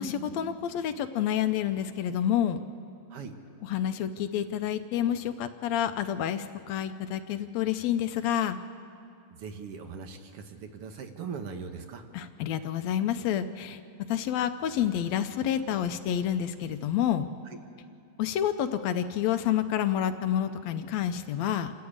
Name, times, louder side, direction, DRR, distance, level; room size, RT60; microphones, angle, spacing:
voice 1, 0.0-2.6 3.6-8.6 12.1-13.8 14.1-17.3 18.2-21.7, left 10 dB, 75° left, 10 dB, 1.8 m, -29 dB
voice 2, 9.3-12.0 17.5-17.6, right 5 dB, 60° right, 6 dB, 1.9 m, -40 dB
28.0 x 13.5 x 8.7 m, 2.6 s
omnidirectional pair, 3.3 m